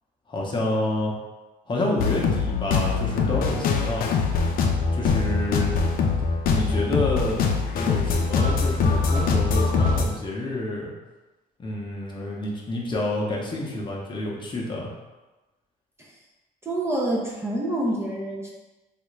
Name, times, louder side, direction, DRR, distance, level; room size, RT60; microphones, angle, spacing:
voice 1, 0.3-1.1 1.7-4.1 4.9-5.8 6.5-7.5 7.7-10.9 11.6-14.9, left 2 dB, 30° left, -2 dB, 0.7 m, -28 dB
sound 1, 2.0-10.1, left 4 dB, 60° left, 0.5 m, -23 dB
voice 2, 16.6-18.5, right 1 dB, 15° right, -4 dB, 0.6 m, -27 dB
3.4 x 2.5 x 3.1 m, 1.1 s
cardioid pair, 110°, 17 cm